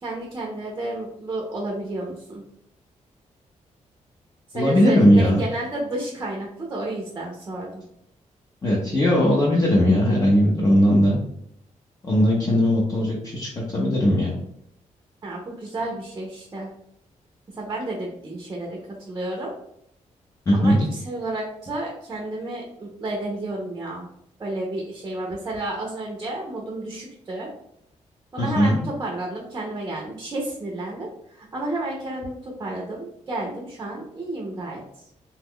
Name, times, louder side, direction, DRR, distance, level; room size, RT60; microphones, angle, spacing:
voice 1, 0.0-2.4 4.5-7.8 15.2-16.7 17.5-19.5 20.5-24.1 24.4-27.5 28.3-34.8, right 2 dB, 25° right, -1 dB, 0.6 m, -31 dB
voice 2, 4.5-5.4 8.6-11.2 12.0-14.3 20.5-20.8 28.4-28.8, equal, 25° left, -4 dB, 0.6 m, -19 dB
3.0 x 2.3 x 3.5 m, 0.74 s
wide cardioid pair, 170°, 13 cm